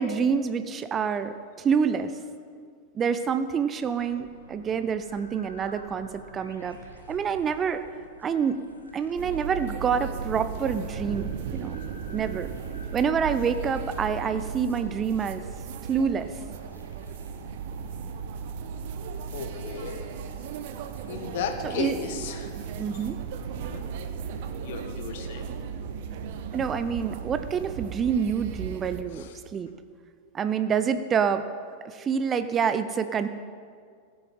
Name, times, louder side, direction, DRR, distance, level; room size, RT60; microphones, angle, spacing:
voice 1, 0.0-2.2 2.9-6.8 7.1-7.8 8.2-8.6 8.9-11.8 12.1-12.5 12.9-15.5 15.9-16.3 21.6-22.0 22.8-23.2 26.5-29.7 30.3-31.5 31.8-33.3, right 6 dB, 25° right, 11 dB, 0.6 m, -27 dB
sound 1, 3.8-22.0, left 1 dB, 80° left, 1.7 m, -51 dB
sound 2, 9.2-29.0, right 6 dB, 50° right, 0.9 m, -36 dB
voice 2, 19.3-20.0 21.1-22.7 23.5-23.9 24.6-25.5 29.1-29.3, left 6 dB, 55° left, 6 dB, 1.6 m, -35 dB
19.0 x 8.7 x 5.5 m, 2.1 s
figure-of-eight pair, 90°, 0 cm